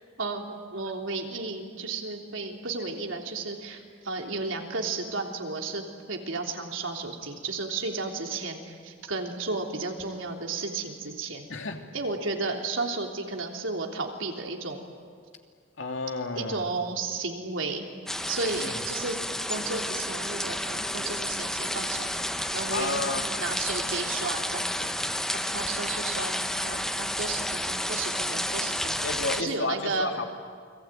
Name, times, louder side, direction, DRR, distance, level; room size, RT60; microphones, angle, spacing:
voice 1, 0.2-11.5 11.9-14.8 16.3-17.9 18.3-19.2 19.5-22.1 22.5-23.0 23.4-29.1 29.4-30.1, right 3 dB, 85° right, 2 dB, 3.4 m, -33 dB
voice 2, 11.5-11.9 15.8-16.7 18.6-18.8 22.7-23.3 29.0-30.2, left 3 dB, 80° left, 4 dB, 2.6 m, -31 dB
sound 1, 18.1-29.4, left 1 dB, 5° left, 0.7 m, -31 dB
29.5 x 21.5 x 9.2 m, 2.1 s
head